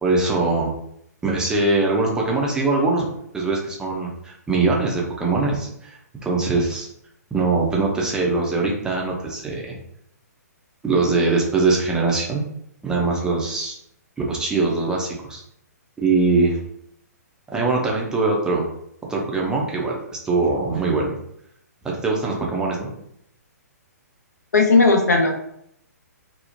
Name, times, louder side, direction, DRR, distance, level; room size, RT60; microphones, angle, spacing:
voice 1, 0.0-0.7 1.2-3.1 3.3-6.9 7.3-9.8 10.8-12.4 12.8-13.8 14.3-15.4 16.0-16.6 17.5-18.7 19.1-21.1 21.8-22.9, right 3 dB, 10° right, -2 dB, 0.4 m, -22 dB
voice 2, 24.5-25.3, left 3 dB, 75° left, 3 dB, 0.6 m, -16 dB
2.8 x 2.0 x 2.5 m, 0.73 s
figure-of-eight pair, 125°, 9 cm